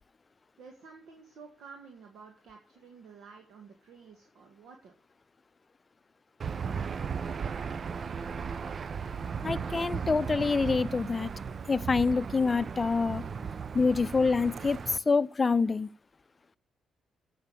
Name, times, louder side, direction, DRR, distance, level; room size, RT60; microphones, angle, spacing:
voice 1, 0.6-4.9, right 5 dB, 60° right, 1.9 m, -51 dB
Aircraft / Engine, 6.4-15.0, right 6 dB, 45° right, 0.6 m, -36 dB
voice 2, 9.4-11.3 11.7-13.3 13.7-15.9, left 4 dB, 30° left, 0.6 m, -26 dB
15.5 x 5.9 x 7.0 m
figure-of-eight pair, 40°, 0 cm